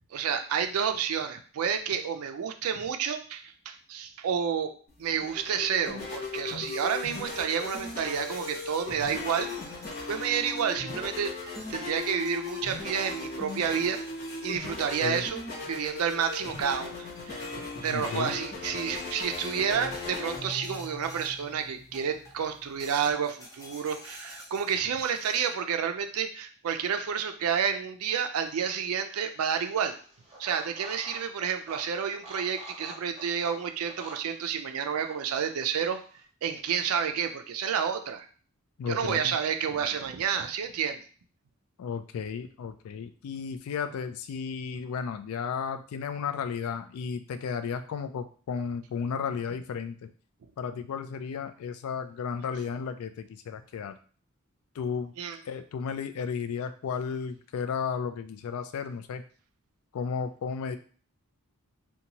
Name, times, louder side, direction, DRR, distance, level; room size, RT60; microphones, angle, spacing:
voice 1, 0.1-4.7 5.0-9.5 10.1-14.0 14.4-15.4 15.7-29.9 30.4-36.0 36.4-38.3 38.9-41.0 55.2-55.4, right 7 dB, 80° right, 7 dB, 0.4 m, -30 dB
sound 1, 4.9-23.1, left 3 dB, 45° left, 0.9 m, -38 dB
sound 2, 6.7-11.0 11.5-21.5 21.9-22.4 22.8-25.5, left 1 dB, 15° left, 0.5 m, -48 dB
voice 2, 17.9-18.4 38.8-39.3 41.8-50.1 50.6-54.0 54.8-55.1 55.5-59.2 59.9-60.8, left 6 dB, 75° left, 10 dB, 0.3 m, -34 dB
sound 3, 28.1-36.2, right 1 dB, 30° right, 0.7 m, -49 dB
2.7 x 2.2 x 2.8 m, 0.41 s
head